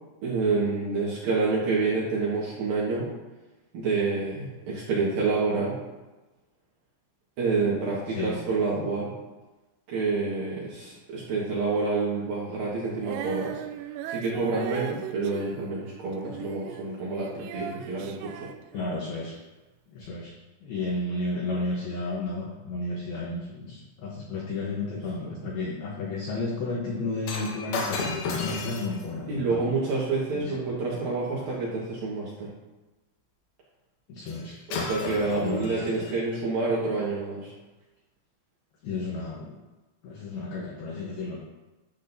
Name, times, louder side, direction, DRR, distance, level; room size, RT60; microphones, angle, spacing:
voice 1, 0.2-3.1 3.7-5.7 7.4-9.1 9.9-13.6 14.1-18.5 29.3-32.5 34.7-37.5, right 3 dB, 65° right, -6 dB, 2.5 m, -28 dB
voice 2, 8.1-8.4 18.7-19.4 19.9-20.3 20.6-29.6 30.3-30.6 34.1-34.6 35.4-35.9 38.8-39.6 40.0-41.4, left 2 dB, 85° left, -2 dB, 2.1 m, -32 dB
Female singing, 13.0-19.3 20.0-20.1, right 10 dB, 80° right, 3.0 m, -38 dB
Shatter, 27.2-31.6 34.3-34.4 34.7-36.2 36.9-37.1, left 4 dB, 70° left, 2.4 m, -35 dB
11.0 x 7.7 x 2.7 m, 1.1 s
omnidirectional pair, 6.0 m